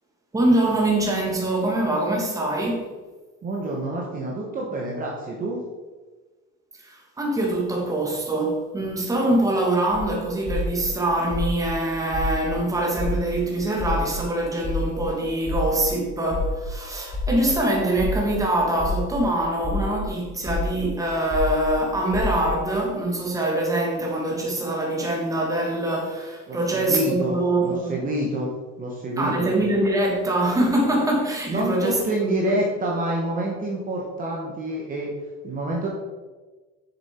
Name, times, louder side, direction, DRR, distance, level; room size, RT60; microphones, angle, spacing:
voice 1, 0.3-2.9 6.8-28.0 29.2-32.5, right 1 dB, 10° right, 1.7 m, -24 dB
voice 2, 3.4-5.6 26.5-28.5 28.8-29.5 31.5-35.1 35.4-35.9, right 1 dB, 30° right, 1.3 m, -27 dB
sound 1, 9.9-10.0 10.5-10.8 11.3-11.7 12.1-12.5 13.0-13.3 13.8-14.1 14.6-15.0 15.5-15.8 16.3-16.7 17.1-17.5 18.0-18.3 18.8-19.1 19.6-20.0 20.5-20.8 21.3-21.7 22.1-22.5, left 3 dB, 15° left, 2.8 m, -32 dB
7.1 x 7.0 x 4.4 m
cardioid pair, 145°, 30 cm